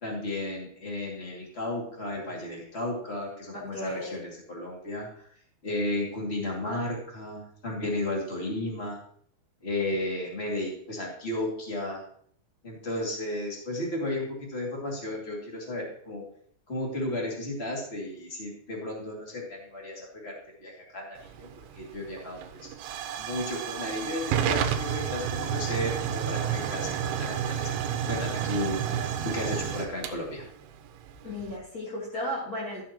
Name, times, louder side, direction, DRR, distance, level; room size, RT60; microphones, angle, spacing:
voice 1, 0.0-5.3 5.6-9.0 9.6-12.0 12.6-16.2 16.7-21.5 21.7-22.7 23.2-27.7 28.1-28.8 29.2-30.4, left 1 dB, 30° left, -2 dB, 1.2 m, -33 dB
voice 2, 3.5-4.2 31.2-32.8, left 1 dB, 65° left, -5 dB, 0.9 m, -34 dB
Hiss / Fire / Tick, 21.2-31.6, right 9 dB, 80° right, 2.6 m, -31 dB
13.0 x 7.4 x 2.9 m, 0.62 s
omnidirectional pair, 5.0 m